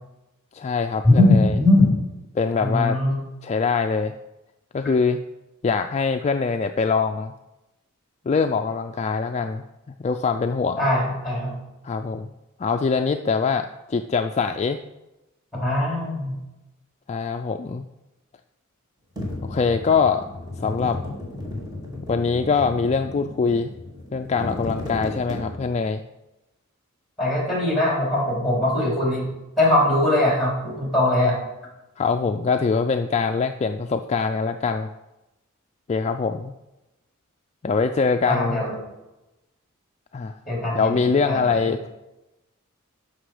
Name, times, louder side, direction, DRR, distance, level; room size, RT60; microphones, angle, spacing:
voice 1, 0.5-1.5 2.4-3.0 3.4-4.2 4.7-5.2 5.6-7.3 8.3-9.6 10.0-10.8 11.8-12.3 12.6-14.8 17.1-17.8 19.5-20.3 20.6-21.0 22.1-23.7 24.1-26.0 32.0-34.9 35.9-36.5 37.6-38.6 40.1-40.3 40.7-41.9, left 5 dB, 30° left, 6 dB, 0.3 m, -23 dB
voice 2, 1.0-1.9 2.6-3.2 10.8-11.5 15.5-16.3 27.2-29.3 29.6-31.4 38.3-38.8 40.5-41.7, left 1 dB, ahead, -3 dB, 4.0 m, -21 dB
sound 1, 19.2-25.9, left 1 dB, 20° right, 2.3 m, -34 dB
12.5 x 5.9 x 4.9 m, 0.99 s
head